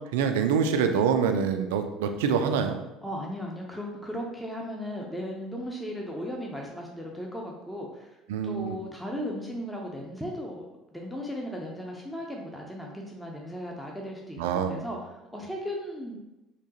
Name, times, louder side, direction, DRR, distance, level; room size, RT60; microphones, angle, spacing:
voice 1, 0.1-2.8 8.3-8.8 14.4-14.8, right 6 dB, 75° right, 7 dB, 0.3 m, -25 dB
voice 2, 3.0-8.1 8.4-14.4 14.6-16.2, equal, 5° left, -1 dB, 0.7 m, -36 dB
3.5 x 2.9 x 2.8 m, 0.95 s
hypercardioid pair, 65°, 0 cm